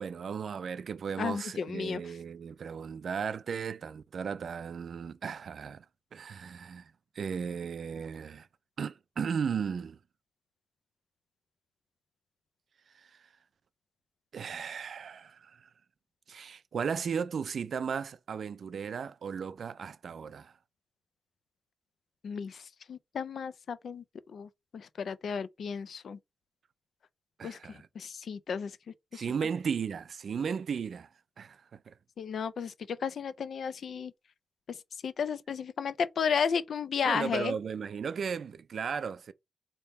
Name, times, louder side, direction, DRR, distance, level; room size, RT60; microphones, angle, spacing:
voice 1, 0.0-5.9 6.1-8.5 8.8-10.0 12.9-13.3 14.3-15.7 16.3-20.5 27.4-27.9 29.1-31.1 31.4-31.9 37.1-39.3, right 6 dB, 70° right, 0.3 m, -36 dB
voice 2, 1.2-2.0 22.2-26.2 27.4-28.7 29.1-29.2 32.2-34.1 34.7-34.8 35.0-37.5, left 6 dB, 80° left, 0.4 m, -33 dB
3.4 x 2.9 x 4.2 m
wide cardioid pair, 100°, 0 cm